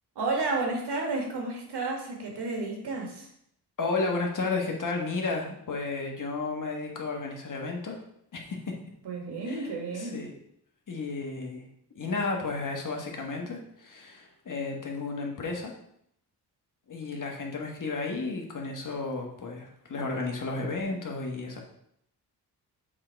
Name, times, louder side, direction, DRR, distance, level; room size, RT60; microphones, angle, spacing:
voice 1, 0.2-3.3 9.0-10.2, right 3 dB, 85° right, 1 dB, 1.7 m, -31 dB
voice 2, 3.8-8.0 8.3-8.7 9.5-9.7 9.9-10.3 10.9-11.6 11.9-15.7 16.9-21.6, left 3 dB, 50° left, 1 dB, 1.4 m, -33 dB
7.3 x 3.8 x 4.5 m, 0.72 s
wide cardioid pair, 130°, 39 cm